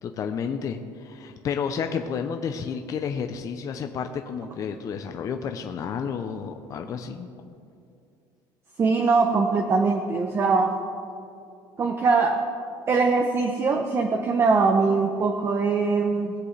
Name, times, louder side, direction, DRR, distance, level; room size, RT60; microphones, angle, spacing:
voice 1, 0.0-7.3, left 6 dB, 40° left, 6 dB, 0.6 m, -31 dB
voice 2, 8.8-10.7 11.8-12.5 12.9-16.3, right 4 dB, 30° right, 3 dB, 0.7 m, -22 dB
19.5 x 7.7 x 3.3 m, 2.5 s
cardioid pair, 135°, 9 cm